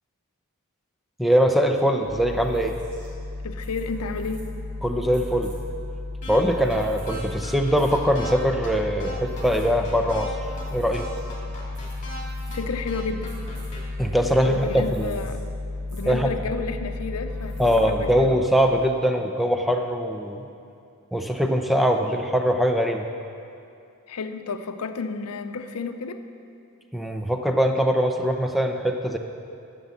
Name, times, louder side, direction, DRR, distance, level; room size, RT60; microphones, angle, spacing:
voice 1, 1.2-2.8 4.8-5.5 6.3-10.4 10.7-11.1 14.0-15.2 16.0-16.3 17.6-20.5 21.1-23.1 26.9-29.2, equal, ahead, 4 dB, 0.6 m, -22 dB
sound 1, 2.0-18.6, left 2 dB, 40° right, 3.2 m, -34 dB
voice 2, 3.4-4.5 12.5-13.4 14.5-15.4 15.9-18.4 24.1-26.2, left 4 dB, 75° left, 8 dB, 0.7 m, -31 dB
sound 2, 6.2-6.4 6.7-6.8 7.1-8.3 8.6-8.7 9.0-10.3 10.6-10.7 10.9-12.2 12.5-12.6 12.9-13.8, equal, 35° left, 2.6 m, -39 dB
11.5 x 7.0 x 7.2 m, 2.5 s
head